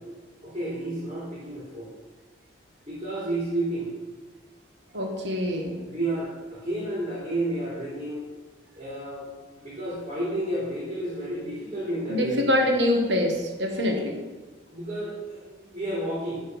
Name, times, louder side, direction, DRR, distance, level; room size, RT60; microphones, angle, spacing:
voice 1, 0.4-1.9 2.8-3.9 5.9-8.2 8.7-9.3 9.6-12.5 14.7-16.4, right 1 dB, 35° right, -8 dB, 3.0 m, -31 dB
voice 2, 4.9-5.8 12.1-14.2, left 1 dB, 70° right, 1 dB, 1.6 m, -25 dB
12.0 x 4.1 x 5.4 m, 1.3 s
head